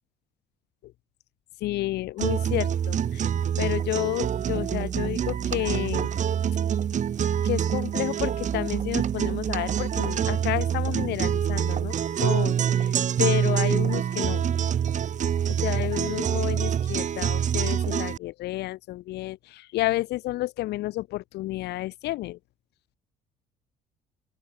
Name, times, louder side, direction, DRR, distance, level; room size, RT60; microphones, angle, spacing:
voice 1, 1.6-3.3 3.6-6.1 7.4-14.5 15.5-22.4, left 17 dB, 80° left, 2.8 m, -31 dB
sound 1, 2.2-18.2, right 9 dB, 45° right, 2.0 m, -26 dB
open air
cardioid pair, 110°, 17 cm